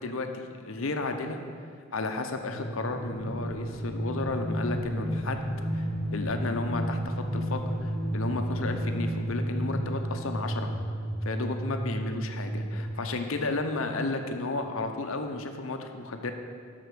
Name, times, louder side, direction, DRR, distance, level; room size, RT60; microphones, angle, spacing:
voice 1, 0.0-1.4 1.9-5.5 5.7-10.7 11.2-16.3, left 3 dB, 65° left, 6 dB, 0.7 m, -33 dB
sound 1, 2.4-12.8, right 1 dB, 10° right, 1.8 m, -33 dB
sound 2, 2.9-10.5, left 1 dB, 70° right, 2.6 m, -36 dB
7.9 x 6.0 x 6.8 m, 2.2 s
head